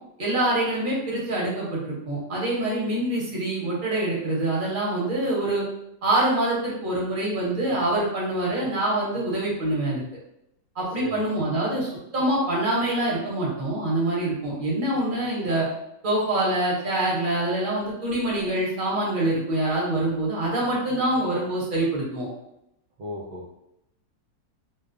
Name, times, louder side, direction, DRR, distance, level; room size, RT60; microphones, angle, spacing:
voice 1, 0.2-5.6 6.0-10.0 10.7-15.7 16.0-22.3, right 1 dB, 40° right, -6 dB, 0.7 m, -25 dB
voice 2, 11.0-11.4 23.0-23.5, equal, 65° right, -3 dB, 1.2 m, -37 dB
3.1 x 2.1 x 2.5 m, 0.81 s
omnidirectional pair, 1.9 m